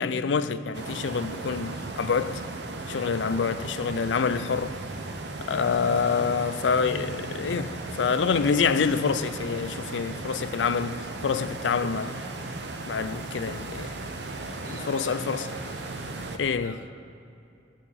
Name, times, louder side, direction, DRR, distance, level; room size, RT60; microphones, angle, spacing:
voice 1, 0.0-2.4 2.9-4.8 5.4-12.2 12.9-13.9 14.7-15.5 16.3-16.8, left 5 dB, 90° left, 0.5 m, -27 dB
sound 1, 0.7-16.4, right 2 dB, 70° right, 0.7 m, -36 dB
voice 2, 14.6-16.0 16.6-16.9, equal, 20° right, 1.6 m, -46 dB
15.5 x 7.2 x 4.1 m
head